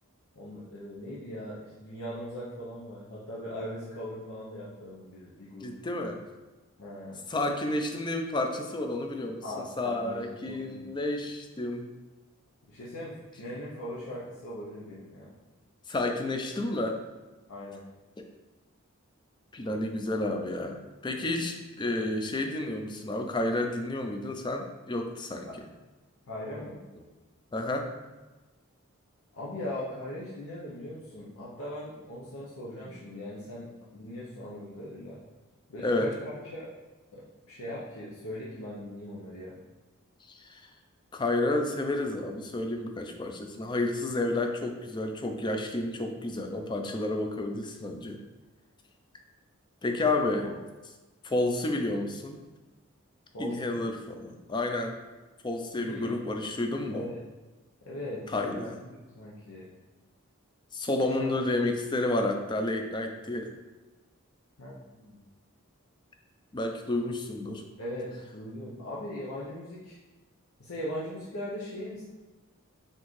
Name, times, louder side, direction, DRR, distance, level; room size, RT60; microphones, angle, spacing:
voice 1, 0.3-5.7 6.8-7.2 9.4-10.8 12.7-15.3 17.5-17.8 25.5-25.6 26.3-26.8 29.4-35.2 35.7-36.7 37.1-39.6 50.4-50.5 53.3-53.8 55.8-56.2 56.9-57.2 57.8-58.3 58.7-59.7 61.1-61.3 64.6-65.2 67.8-70.0 70.6-72.0, left 1 dB, 80° left, -7 dB, 0.8 m, -40 dB
voice 2, 5.6-6.2 7.3-11.9 15.9-17.0 18.2-18.3 19.5-25.5 27.5-27.9 35.8-36.1 40.3-40.6 41.1-48.2 49.8-50.5 51.2-52.4 53.4-54.9 55.4-57.1 58.3-58.8 60.7-63.5 66.5-67.6, left 2 dB, 20° left, 4 dB, 0.4 m, -30 dB
4.4 x 3.6 x 3.1 m, 1.2 s
head